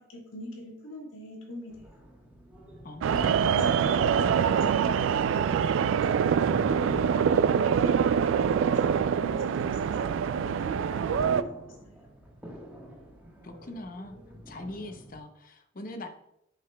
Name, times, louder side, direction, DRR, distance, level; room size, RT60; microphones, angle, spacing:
voice 1, 0.0-1.8 7.8-11.6 11.8-12.0, equal, 85° left, 0 dB, 1.6 m, -43 dB
sound 1, 1.7-15.2, right 1 dB, 10° right, 1.1 m, -45 dB
voice 2, 2.8-3.7 13.4-14.2 14.5-16.1, left 1 dB, 45° left, 7 dB, 0.7 m, -41 dB
sound 2, 3.0-11.4, right 7 dB, 80° right, 0.3 m, -25 dB
9.9 x 5.8 x 2.2 m, 0.79 s
head